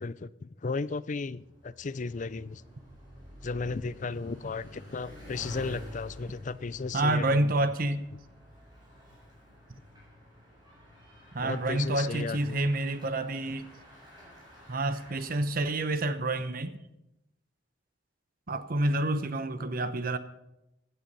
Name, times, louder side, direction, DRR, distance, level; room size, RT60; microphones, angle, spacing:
voice 1, 0.0-2.6 3.4-7.5 11.4-12.6, left 4 dB, 40° left, 0.5 m, -35 dB
Bicycle, 1.2-15.9, left 1 dB, 20° right, 7.3 m, -49 dB
voice 2, 6.9-8.0 11.3-13.7 14.7-16.8 18.5-20.2, right 2 dB, 50° right, 0.9 m, -28 dB
16.0 x 11.5 x 5.5 m
head